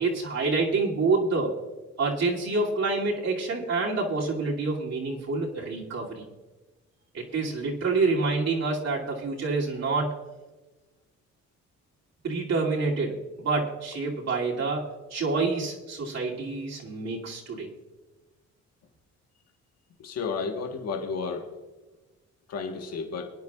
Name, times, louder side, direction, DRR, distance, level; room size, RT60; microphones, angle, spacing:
voice 1, 0.0-1.6 2.0-6.2 7.1-10.1 12.2-17.7, right 3 dB, 60° right, -3 dB, 2.6 m, -27 dB
voice 2, 20.0-21.5 22.5-23.3, left 5 dB, 55° left, 4 dB, 1.3 m, -32 dB
22.5 x 9.8 x 2.4 m, 1.2 s
cardioid pair, 90°, 30 cm